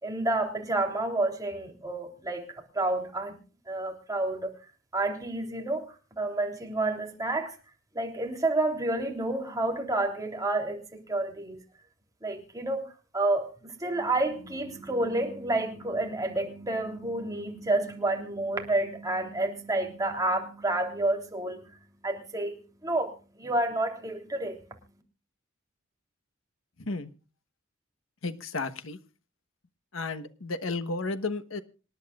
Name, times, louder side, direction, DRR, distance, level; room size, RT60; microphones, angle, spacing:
voice 1, 0.0-3.4 3.7-4.5 4.9-5.9 6.2-7.5 7.9-11.6 12.2-24.8, right 2 dB, 20° right, 2 dB, 3.4 m, -30 dB
voice 2, 26.8-27.1 28.2-29.0 29.9-31.6, left 3 dB, 75° left, 9 dB, 1.2 m, -33 dB
26.5 x 11.0 x 2.4 m, 0.34 s
head